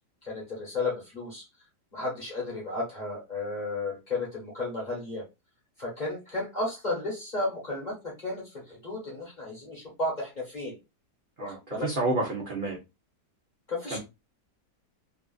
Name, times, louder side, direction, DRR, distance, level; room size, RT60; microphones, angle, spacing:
voice 1, 0.2-1.4 1.9-5.2 5.8-10.7 11.4-11.9 13.7-14.0, left 2 dB, 30° left, -4 dB, 1.1 m, -33 dB
voice 2, 11.4-12.8 13.9-14.0, right 2 dB, 55° right, -2 dB, 0.6 m, -29 dB
3.0 x 2.4 x 2.3 m, 0.25 s
omnidirectional pair, 1.9 m